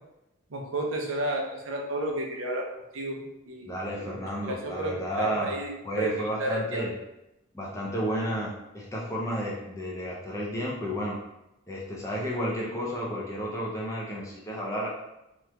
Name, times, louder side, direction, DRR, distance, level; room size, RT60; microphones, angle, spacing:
voice 1, 0.5-2.7 2.9-3.2 3.4-4.2 4.5-5.7 6.0-6.8, right 1 dB, 80° right, 0 dB, 0.6 m, -32 dB
voice 2, 3.6-6.9 7.5-11.2 11.7-14.9, equal, 15° left, -3 dB, 0.5 m, -32 dB
3.0 x 2.4 x 3.3 m, 0.90 s
head